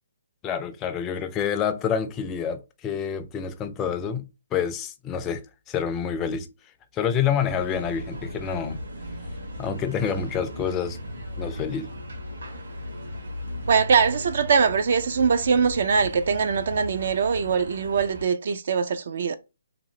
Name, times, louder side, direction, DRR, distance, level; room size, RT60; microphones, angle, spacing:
voice 1, 0.4-6.5 6.9-8.8 9.6-11.0 11.4-11.9, left 7 dB, 20° left, 0.4 m, -28 dB
sound 1, 7.4-18.2, left 1 dB, 80° right, 1.3 m, -37 dB
voice 2, 13.6-19.4, right 6 dB, 55° right, 0.3 m, -22 dB
2.9 x 2.4 x 2.6 m
hypercardioid pair, 150°, 0 cm